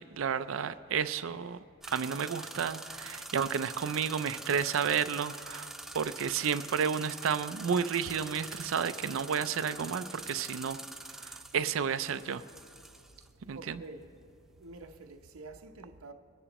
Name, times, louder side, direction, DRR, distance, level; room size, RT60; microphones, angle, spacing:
voice 1, 0.0-1.6 1.9-10.8 11.1-12.4 13.5-13.8, right 7 dB, 65° right, 0.4 m, -32 dB
sound 1, 1.8-13.3, right 2 dB, ahead, 0.3 m, -45 dB
voice 2, 13.0-14.1 14.6-16.1, right 2 dB, 85° right, 0.8 m, -48 dB
22.5 x 9.9 x 3.0 m
head